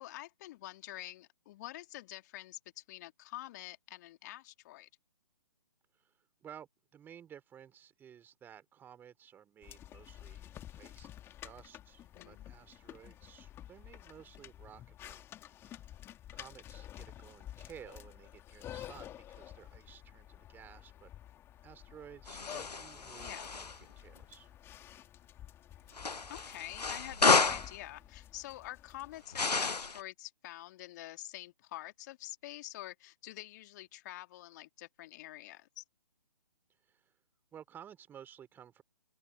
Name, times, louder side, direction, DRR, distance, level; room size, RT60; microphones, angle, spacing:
voice 1, 0.0-4.9 12.1-12.5 23.2-23.5 26.3-35.8, left 16 dB, 25° left, 2.4 m, -47 dB
voice 2, 5.9-11.1 11.4-15.3 15.7-15.9 16.3-21.1 21.6-24.6 36.8-37.1 37.5-38.8, right 9 dB, 10° right, 3.9 m, -55 dB
sound 1, 9.6-29.2, left 12 dB, 10° left, 2.3 m, -51 dB
sound 2, 22.3-23.8 25.9-27.7 29.3-30.0, left 4 dB, 85° left, 0.6 m, -30 dB
open air
figure-of-eight pair, 140°, 20 cm